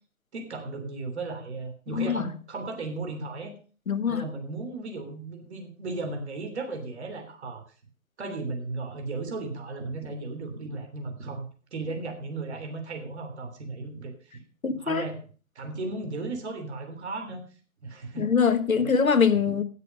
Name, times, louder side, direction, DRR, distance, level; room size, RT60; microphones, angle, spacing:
voice 1, 0.3-3.5 4.1-7.6 8.2-14.4 14.8-15.2 15.5-17.4 17.8-18.3 18.7-18.9, right 3 dB, 50° right, 4 dB, 3.3 m, -35 dB
voice 2, 1.9-2.2 3.9-4.2 14.6-15.0 18.2-19.6, left 6 dB, 75° left, 12 dB, 1.3 m, -23 dB
17.0 x 6.8 x 5.3 m, 0.39 s
figure-of-eight pair, 140°, 42 cm